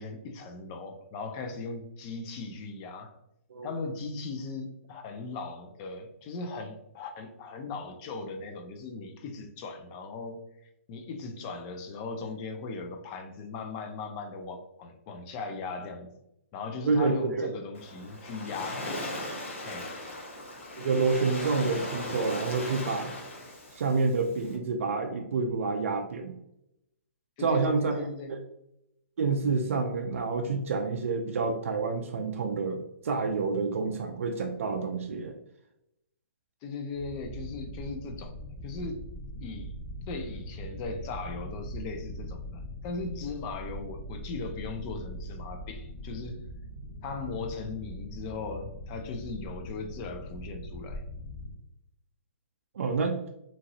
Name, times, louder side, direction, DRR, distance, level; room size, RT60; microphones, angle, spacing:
voice 1, 0.0-3.1 3.6-10.5 10.9-16.1 16.5-19.0 19.6-20.0 27.4-28.3 36.6-38.3 38.6-39.0 39.4-39.7 40.1-46.4 47.0-51.0, left 3 dB, 25° left, 5 dB, 0.3 m, -38 dB
voice 2, 16.9-17.5 20.8-23.1 23.7-26.4 27.4-28.1 29.2-35.3 52.7-53.2, right 4 dB, 75° right, 3 dB, 0.4 m, -28 dB
Waves surf, 17.8-24.6, left 1 dB, 75° left, 0.9 m, -38 dB
sound 1, 36.9-51.6, equal, 45° left, 1.1 m, -41 dB
2.9 x 2.7 x 2.6 m, 0.83 s
hypercardioid pair, 160°, 7 cm